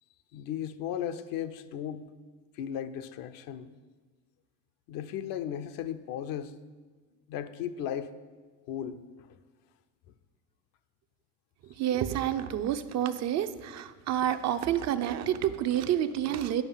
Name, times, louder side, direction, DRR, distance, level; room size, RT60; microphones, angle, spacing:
voice 1, 0.3-2.1 2.5-3.7 4.9-6.5 7.3-8.1 8.7-9.4, left 9 dB, 70° left, 0.6 m, -36 dB
voice 2, 11.6-16.6, right 10 dB, 50° right, 0.6 m, -29 dB
9.3 x 5.3 x 5.6 m
supercardioid pair, 110°, 36 cm